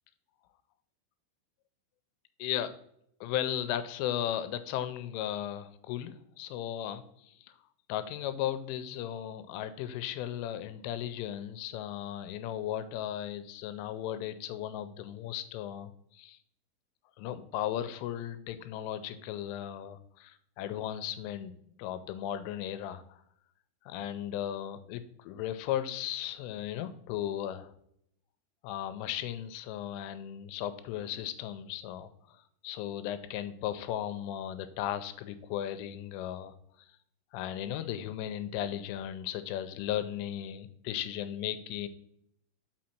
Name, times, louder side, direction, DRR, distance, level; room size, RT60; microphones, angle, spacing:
voice 1, 2.4-2.7 3.2-7.5 7.9-16.4 17.2-19.9 20.2-23.2 23.9-27.7 28.6-36.6 37.3-41.9, left 11 dB, 90° left, 11 dB, 3.1 m, -36 dB
6.3 x 5.9 x 4.4 m, 0.71 s
omnidirectional pair, 5.6 m